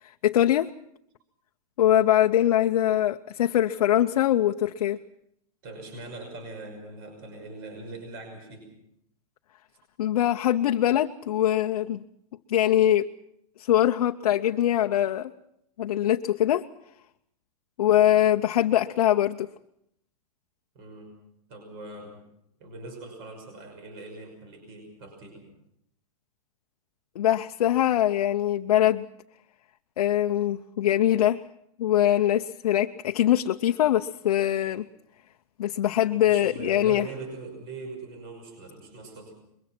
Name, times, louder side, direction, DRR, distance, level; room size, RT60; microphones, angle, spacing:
voice 1, 0.2-0.7 1.8-5.0 10.0-12.0 12.5-13.1 13.7-15.3 15.8-16.6 17.8-19.5 27.2-29.1 30.0-31.4 31.8-34.8 35.6-37.0, left 12 dB, 65° left, 5 dB, 0.8 m, -22 dB
voice 2, 5.6-8.7 20.7-21.1 21.5-22.2 22.6-25.5 36.2-39.3, right 3 dB, 40° right, 4 dB, 5.8 m, -41 dB
23.5 x 22.0 x 6.0 m, 0.75 s
supercardioid pair, 170°, 20 cm